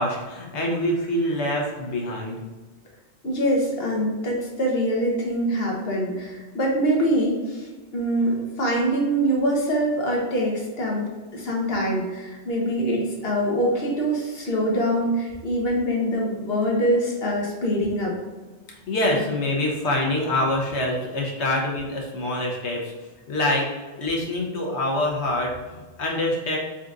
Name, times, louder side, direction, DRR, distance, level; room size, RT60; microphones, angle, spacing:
voice 1, 0.0-2.4 18.9-22.9 23.3-23.7 24.0-26.6, left 1 dB, 80° left, -1 dB, 1.2 m, -25 dB
voice 2, 3.2-11.0 11.3-18.1, equal, 60° left, -2 dB, 1.3 m, -24 dB
4.1 x 3.8 x 2.5 m, 1.3 s
omnidirectional pair, 1.1 m